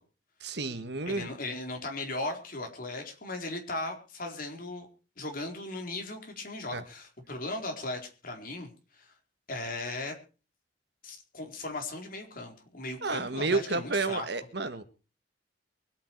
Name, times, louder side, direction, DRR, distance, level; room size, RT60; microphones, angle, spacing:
voice 1, 0.4-1.3 6.7-6.8 13.0-14.8, right 3 dB, 65° right, 11 dB, 1.7 m, -31 dB
voice 2, 1.1-4.9 5.2-8.7 9.0-9.1 9.5-10.1 11.0-14.3, left 2 dB, 55° left, 3 dB, 4.3 m, -37 dB
24.0 x 9.2 x 4.7 m, 0.35 s
head